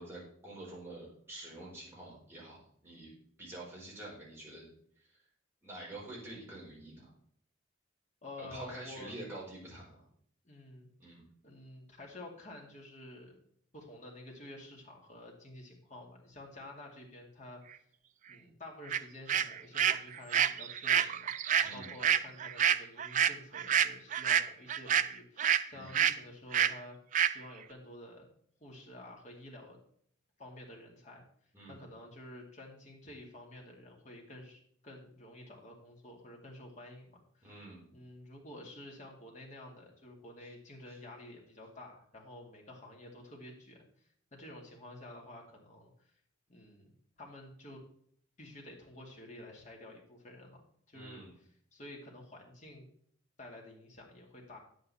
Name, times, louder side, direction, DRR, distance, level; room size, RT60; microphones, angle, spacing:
voice 1, 0.0-3.1 3.4-4.7 5.1-5.2 5.6-7.1 8.4-10.0 11.0-11.2 21.6-21.9 25.7-26.0 31.5-31.8 37.4-37.8 40.9-41.0 50.9-51.3, right 1 dB, 10° right, -6 dB, 4.4 m, -47 dB
voice 2, 8.2-9.3 10.4-10.9 11.4-13.4 13.7-17.8 18.3-27.0 27.3-28.3 28.6-29.8 30.4-31.2 31.7-37.5 37.9-46.1 46.5-47.8 48.4-52.9 53.4-54.6, left 1 dB, 35° left, -1 dB, 2.3 m, -50 dB
sound 1, 18.9-19.0 19.3-25.6 25.9-26.2 26.5-26.7 27.1-27.3, right 9 dB, 40° right, 0.4 m, -28 dB
9.4 x 8.3 x 4.2 m, 0.63 s
head